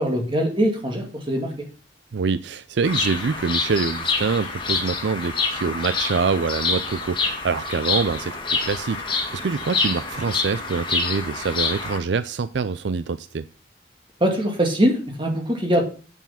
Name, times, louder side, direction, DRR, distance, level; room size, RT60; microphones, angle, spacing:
voice 1, 0.0-1.7 14.2-15.8, equal, 25° right, 2.2 m, -22 dB
voice 2, 2.1-13.5, right 5 dB, 75° right, 0.5 m, -25 dB
Bird vocalization bird call bird song, 2.8-12.0, left 4 dB, 25° left, 1.9 m, -27 dB
8.1 x 7.2 x 5.7 m
head